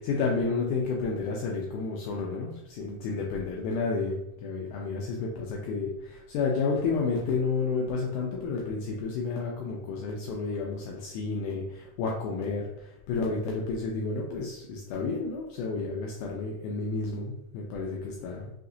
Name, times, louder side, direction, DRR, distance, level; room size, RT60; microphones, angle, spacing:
voice 1, 0.0-18.5, left 4 dB, 80° left, -1 dB, 1.9 m, -31 dB
5.8 x 2.8 x 2.6 m, 0.82 s
omnidirectional pair, 3.9 m